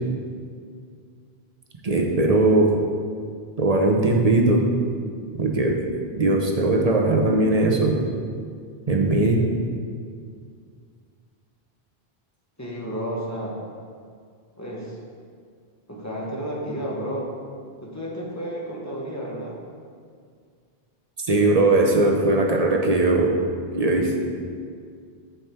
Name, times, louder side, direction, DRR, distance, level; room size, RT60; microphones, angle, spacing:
voice 1, 1.8-2.7 3.6-4.7 5.3-5.8 6.2-8.0 8.9-9.4 21.3-23.3 23.8-24.1, right 2 dB, 40° right, 0 dB, 0.9 m, -19 dB
voice 2, 12.6-13.6 14.6-15.0 15.9-17.3 17.8-19.6, equal, 15° left, -4 dB, 1.3 m, -31 dB
7.1 x 6.9 x 4.4 m, 2.1 s
omnidirectional pair, 1.0 m